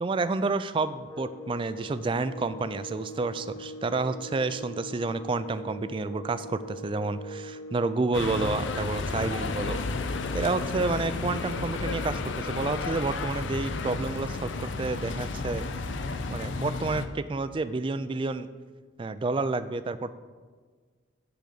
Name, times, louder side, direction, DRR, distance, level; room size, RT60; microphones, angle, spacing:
voice 1, 0.0-9.8 10.3-15.6 16.3-18.5 19.0-20.1, right 3 dB, 25° right, 13 dB, 0.3 m, -30 dB
sound 1, 1.1-8.1, equal, 20° left, 0.8 m, -42 dB
sound 2, 8.1-17.0, left 3 dB, 75° left, 0.6 m, -32 dB
10.0 x 4.0 x 6.5 m, 1.5 s
head